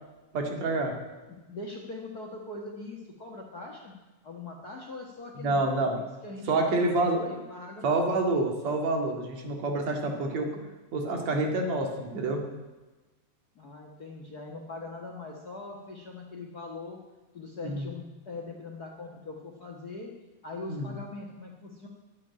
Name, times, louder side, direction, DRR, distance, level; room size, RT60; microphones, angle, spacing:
voice 1, 0.3-0.9 5.4-6.0 6.5-7.3 7.8-10.5 10.9-12.4 17.6-17.9 20.7-20.9, right 2 dB, 55° right, 3 dB, 3.1 m, -27 dB
voice 2, 1.3-4.0 4.2-7.9 13.5-17.0 17.3-20.1 20.4-21.9, left 3 dB, 70° left, 1 dB, 0.9 m, -41 dB
10.5 x 10.5 x 9.7 m, 1.2 s
omnidirectional pair, 4.1 m